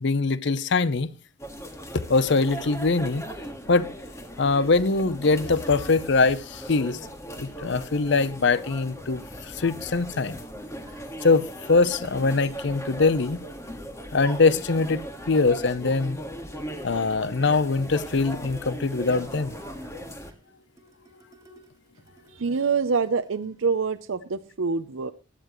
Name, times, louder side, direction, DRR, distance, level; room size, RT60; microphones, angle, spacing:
voice 1, 0.0-1.1 1.9-3.2 3.7-3.9 4.4-7.0 7.4-10.4 11.2-13.4 14.1-15.0 15.3-16.2 16.8-19.6, left 3 dB, 60° left, 0.7 m, -23 dB
sound 1, 1.4-20.3, equal, 15° left, 1.7 m, -38 dB
sound 2, 10.8-24.0, right 1 dB, 15° right, 2.7 m, -53 dB
voice 2, 22.3-25.1, right 5 dB, 85° right, 0.6 m, -26 dB
17.0 x 11.5 x 3.1 m
head